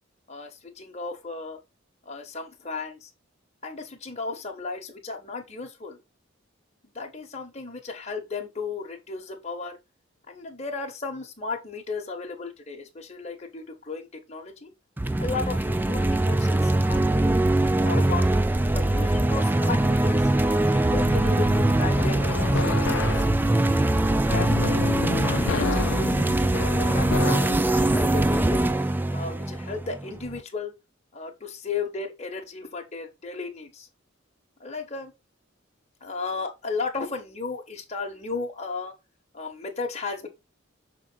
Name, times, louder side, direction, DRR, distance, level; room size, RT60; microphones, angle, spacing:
voice 1, 0.3-1.6 2.0-3.1 3.6-6.0 6.9-9.8 10.3-14.7 15.2-17.4 17.8-18.3 18.7-20.3 20.7-24.8 25.2-26.3 26.8-28.7 29.1-30.7 31.1-33.9 34.6-35.1 36.0-38.9 39.3-40.3, left 4 dB, 35° left, 1.2 m, -35 dB
sound 1, 15.0-30.4, right 1 dB, 10° right, 0.3 m, -22 dB
sound 2, 20.9-27.6, left 5 dB, 65° left, 0.5 m, -31 dB
6.2 x 3.8 x 4.0 m
head